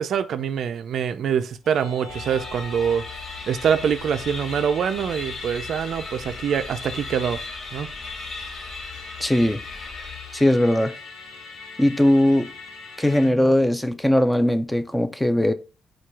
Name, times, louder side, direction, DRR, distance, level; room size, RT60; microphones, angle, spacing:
voice 1, 0.0-3.0 3.5-7.4 7.7-7.9, right 7 dB, 65° right, 0.4 m, -24 dB
Musical instrument, 1.6-13.3, left 3 dB, 65° left, 0.9 m, -42 dB
sound 1, 2.1-10.8, left 3 dB, 45° left, 1.2 m, -37 dB
voice 2, 9.2-9.6 10.3-11.0 11.8-12.5 13.0-15.5, left 1 dB, 5° left, 0.4 m, -19 dB
4.4 x 2.3 x 4.7 m
cardioid pair, 90°, 0 cm